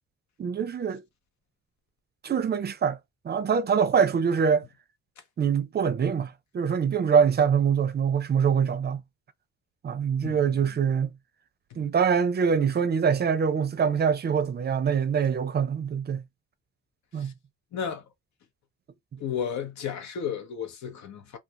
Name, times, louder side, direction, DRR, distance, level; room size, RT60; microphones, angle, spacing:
voice 1, 0.4-1.0 2.2-3.0 3.2-4.7 5.4-9.0 9.8-11.1 11.8-16.2 17.1-17.3, right 6 dB, 35° right, 0.5 m, -24 dB
voice 2, 10.2-10.6 17.2-17.3 17.7-18.0 19.2-21.4, left 7 dB, 65° left, 0.8 m, -33 dB
2.4 x 2.3 x 2.8 m
cardioid pair, 90°, 30 cm